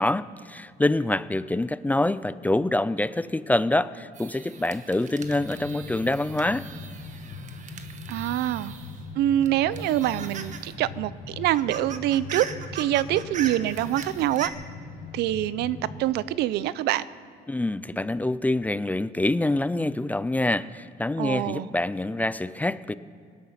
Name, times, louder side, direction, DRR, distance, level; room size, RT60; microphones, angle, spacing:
voice 1, 0.0-6.7 17.5-22.9, left 2 dB, 10° left, 16 dB, 0.4 m, -26 dB
sound 1, 4.1-9.1 9.4-10.7 11.0-11.1 11.4-14.5, right 7 dB, 45° right, 1.2 m, -40 dB
sound 2, 5.2-16.0, left 4 dB, 70° left, 2.1 m, -41 dB
voice 2, 8.1-8.7 9.2-12.5 12.7-14.5 15.1-17.1 21.2-21.7, right 13 dB, 80° right, 18 dB, 0.5 m, -25 dB
19.0 x 12.0 x 5.8 m, 2.3 s
cardioid pair, 110°, 17 cm